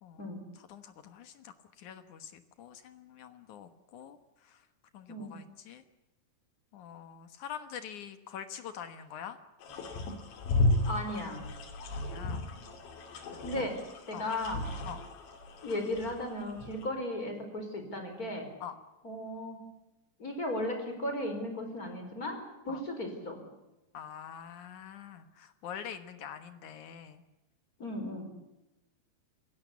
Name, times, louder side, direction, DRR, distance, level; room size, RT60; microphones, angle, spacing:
voice 1, 0.0-4.2 4.4-4.6 4.9-5.8 6.7-9.4 11.9-12.5 13.3-13.5 14.1-14.3 14.9-15.0 18.6-18.8 22.7-22.8 23.9-27.2, left 8 dB, 65° left, 10 dB, 2.0 m, -45 dB
sound 1, 9.6-16.9, left 2 dB, 80° left, 5.1 m, -34 dB
voice 2, 10.8-11.4 13.4-13.7 14.1-14.6 15.6-18.5 19.0-19.6 20.2-22.4 22.6-23.4 27.8-28.3, left 1 dB, 20° left, 5 dB, 4.7 m, -35 dB
28.0 x 16.5 x 8.4 m, 1.0 s
omnidirectional pair, 5.2 m